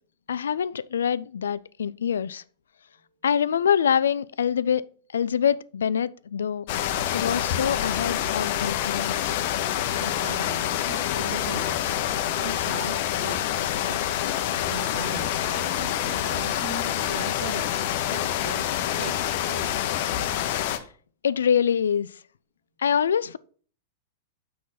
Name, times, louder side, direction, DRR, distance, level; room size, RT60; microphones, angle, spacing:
voice 1, 0.3-2.4 3.2-4.8 5.1-6.6 7.1-9.2 21.2-22.1 22.8-23.4, left 8 dB, 80° left, 0.3 m, -25 dB
sound 1, 6.7-20.8, left 11 dB, 60° left, 0.7 m, -27 dB
voice 2, 9.9-12.0 12.3-13.5 13.8-19.8, right 2 dB, 70° right, 2.3 m, -39 dB
6.3 x 5.6 x 4.0 m
hypercardioid pair, 110°, 0 cm